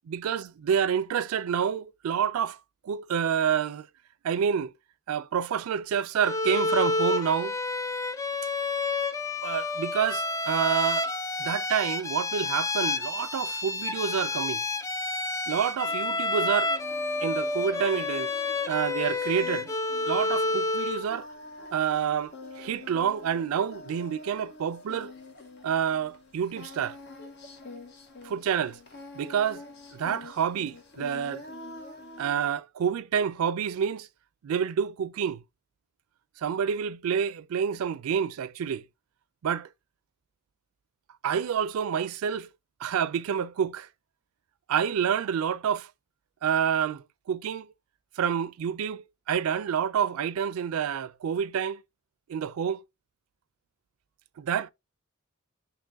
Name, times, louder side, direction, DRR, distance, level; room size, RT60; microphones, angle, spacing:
voice 1, 0.1-2.6 2.8-3.9 4.2-4.7 5.1-7.5 9.4-11.1 11.4-14.6 15.5-16.7 17.2-18.3 18.7-19.7 20.1-21.3 21.7-25.1 25.6-27.0 28.2-28.8 29.1-29.6 29.9-31.5 32.2-34.1 34.4-35.4 36.4-38.8 39.4-39.7 41.2-42.5 42.8-43.9 44.7-45.9 46.4-47.7 48.2-51.8 52.3-52.8 54.4-54.7, right 8 dB, 85° right, 0.4 m, -28 dB
Bowed string instrument, 6.2-21.1, left 2 dB, 15° left, 0.3 m, -29 dB
Singing, 15.9-32.5, left 2 dB, 50° left, 0.8 m, -46 dB
3.9 x 2.8 x 3.5 m
head